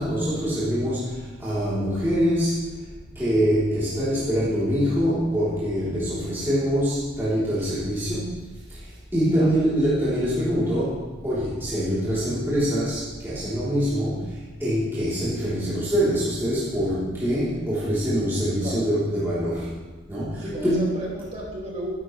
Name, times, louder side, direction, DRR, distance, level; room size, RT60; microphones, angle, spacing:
voice 1, 0.0-2.7 3.2-8.9 9.1-19.8 20.1-20.9, equal, 10° right, -12 dB, 3.4 m, -24 dB
voice 2, 20.4-21.9, equal, 35° right, -4 dB, 2.4 m, -33 dB
15.5 x 11.0 x 3.3 m, 1.3 s
head